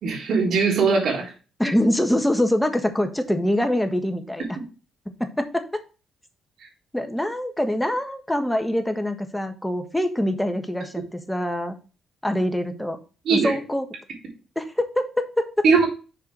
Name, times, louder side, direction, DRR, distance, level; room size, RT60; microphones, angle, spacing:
voice 1, 0.0-1.3 13.3-13.6 15.6-15.8, right 5 dB, 70° right, -1 dB, 3.8 m, -20 dB
voice 2, 1.6-4.4 5.2-5.8 6.9-11.8 12.2-13.0 13.3-13.9 14.5-15.5, left 1 dB, 5° left, 7 dB, 1.5 m, -24 dB
6.9 x 4.8 x 6.2 m, 0.34 s
cardioid pair, 90°, 0 cm